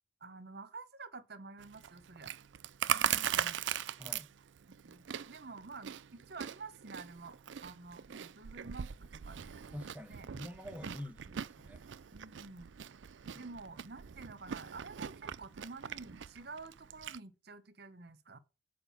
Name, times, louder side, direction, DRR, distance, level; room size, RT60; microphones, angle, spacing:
voice 1, 0.2-2.3 3.1-3.6 4.7-9.6 10.1-10.3 10.8-11.0 12.1-12.7 13.3-18.4, right 4 dB, 55° right, 1.0 m, -49 dB
Chewing mastication, 1.6-17.2, right 9 dB, 75° right, 0.4 m, -40 dB
voice 2, 2.9-3.4 4.0-4.3 9.7-11.8 13.3-13.5, left 1 dB, 10° right, 1.0 m, -47 dB
8.9 x 5.0 x 7.2 m
head